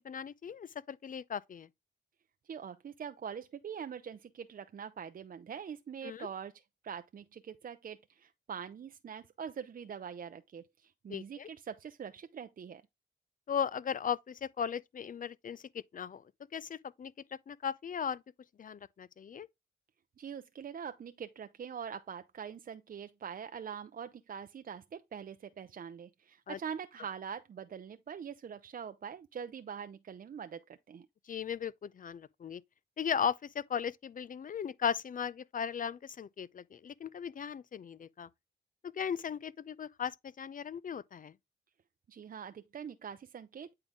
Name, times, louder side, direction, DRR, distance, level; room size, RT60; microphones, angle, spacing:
voice 1, 0.0-1.7 6.0-6.3 11.1-11.5 13.5-16.2 16.5-17.1 17.5-18.2 18.6-19.5 26.5-26.6 31.3-32.6 33.0-38.3 38.9-41.3, left 7 dB, 50° left, 0.5 m, -37 dB
voice 2, 2.5-12.8 20.2-31.1 42.1-43.7, right 7 dB, 55° right, 0.6 m, -44 dB
8.8 x 3.8 x 3.6 m
cardioid pair, 70°, 18 cm